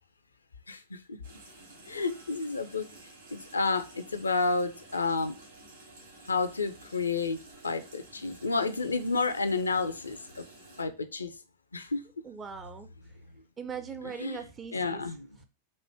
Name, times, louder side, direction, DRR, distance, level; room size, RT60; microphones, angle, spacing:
voice 1, 0.7-1.2 1.9-2.9 3.3-5.3 6.3-7.4 7.6-10.4 10.8-11.3 11.7-12.0 14.2-14.4 14.7-15.2, left 4 dB, 75° left, 0.5 m, -30 dB
sound 1, 1.2-10.8, right 2 dB, 70° right, 2.3 m, -52 dB
voice 2, 12.2-13.2 13.6-15.5, right 7 dB, 20° right, 0.4 m, -41 dB
4.4 x 2.6 x 3.3 m
figure-of-eight pair, 90°, 0 cm